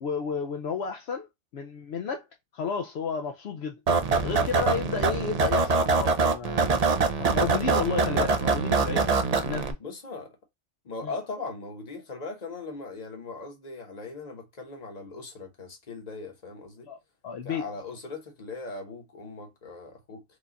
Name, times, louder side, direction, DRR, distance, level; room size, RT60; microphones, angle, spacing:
voice 1, 0.0-1.3 1.5-2.2 2.5-3.8 4.2-9.1 9.4-9.8 11.0-11.1 16.9-17.0 17.2-17.7, left 6 dB, 65° left, 0.8 m, -32 dB
sound 1, 3.9-9.7, right 4 dB, 40° right, 0.6 m, -24 dB
voice 2, 9.8-10.4 10.8-16.9 17.4-20.2, left 3 dB, 40° left, 1.1 m, -39 dB
4.9 x 2.4 x 4.0 m
omnidirectional pair, 1.2 m